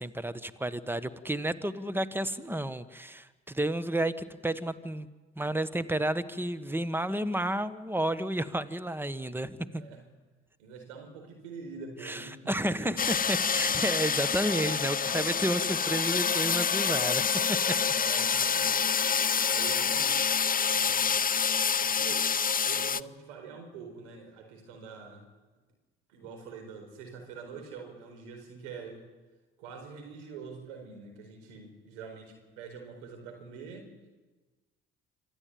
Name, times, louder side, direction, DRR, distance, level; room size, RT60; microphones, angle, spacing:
voice 1, 0.0-5.1 5.4-9.8 12.0-17.2 17.5-17.6, right 1 dB, 5° right, 14 dB, 1.4 m, -31 dB
voice 2, 9.7-10.0 10.6-12.4 13.5-13.8 17.9-18.7 19.0-20.2 20.6-21.1 21.8-22.2 22.6-25.2 26.1-29.0 29.6-33.9, right 5 dB, 85° right, 4 dB, 4.7 m, -45 dB
sound 1, 13.0-23.0, left 6 dB, 25° left, 0.6 m, -27 dB
27.0 x 14.0 x 9.4 m, 1.3 s
hypercardioid pair, 50°, 35 cm